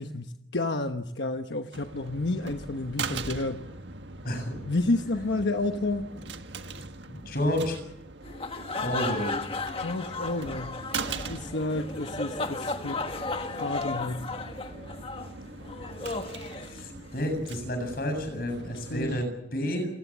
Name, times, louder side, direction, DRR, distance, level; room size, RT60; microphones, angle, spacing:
voice 1, 0.0-3.7 4.6-6.1 9.8-10.8 11.3-13.0 13.5-14.3 18.9-19.2, left 2 dB, 80° left, 6 dB, 1.1 m, -30 dB
sound 1, 1.7-19.3, right 4 dB, 85° right, 1.6 m, -41 dB
voice 2, 7.3-7.8 8.8-9.3 16.7-19.9, equal, 55° left, 6 dB, 7.6 m, -30 dB
sound 2, 8.2-17.3, left 3 dB, 30° left, 1.5 m, -35 dB
28.0 x 19.5 x 7.4 m, 0.84 s
head